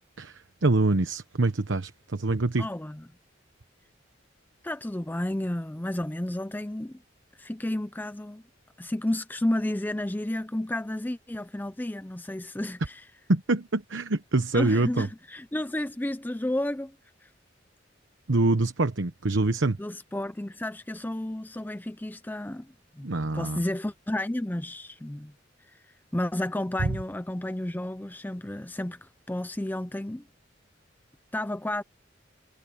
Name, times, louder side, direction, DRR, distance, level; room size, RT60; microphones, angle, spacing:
voice 1, 0.2-2.7 13.3-15.1 18.3-19.8 23.0-23.6 26.8-26.9, right 2 dB, 75° right, 1.0 m, -25 dB
voice 2, 2.6-3.0 4.6-7.0 7.4-8.4 8.8-13.0 14.5-17.0 17.2-17.3 19.8-25.3 25.7-30.3 31.3-31.8, left 1 dB, 10° left, 0.5 m, -32 dB
head